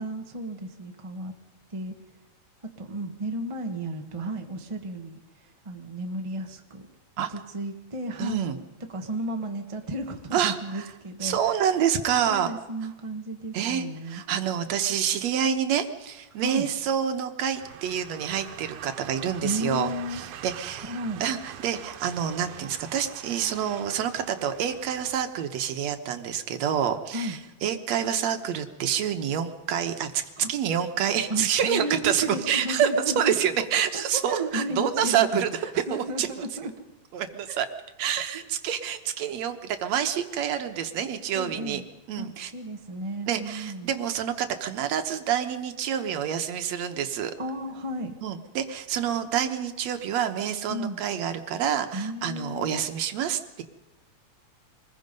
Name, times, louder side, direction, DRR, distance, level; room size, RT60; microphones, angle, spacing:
voice 1, 0.0-1.3 1.7-1.9 2.8-6.9 7.3-8.6 8.9-11.4 12.2-14.2 16.4-16.7 19.4-20.2 20.7-21.2 27.1-27.4 30.4-30.5 31.3-36.7 37.5-37.6 41.3-41.8 42.2-42.3 42.5-43.9 47.4-48.1 50.7-51.0 51.9-52.8, right 1 dB, 30° right, 4 dB, 0.5 m, -33 dB
voice 2, 8.2-8.6 10.3-10.9 11.2-12.5 13.5-30.2 30.5-32.9 33.2-35.6 35.9-36.5 37.1-37.7 38.0-41.8 42.1-42.5 43.3-47.3 48.2-53.6, right 9 dB, 70° right, 7 dB, 2.2 m, -27 dB
sound 1, 17.5-25.3, right 10 dB, 85° right, 2.4 m, -44 dB
25.0 x 20.5 x 5.3 m, 1.1 s
omnidirectional pair, 3.3 m